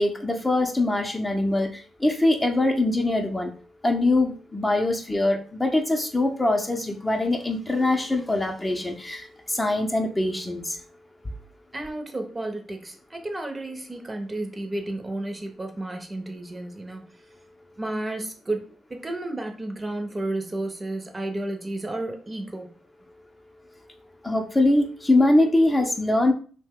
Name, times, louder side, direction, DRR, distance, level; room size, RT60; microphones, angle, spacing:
voice 1, 0.0-1.7 2.0-3.5 3.8-10.8 24.2-26.3, left 2 dB, 20° left, 3 dB, 0.6 m, -23 dB
voice 2, 11.7-17.0 17.8-22.7, right 2 dB, 30° right, 4 dB, 0.7 m, -32 dB
2.7 x 2.1 x 3.6 m, 0.39 s
supercardioid pair, 55°, 0 cm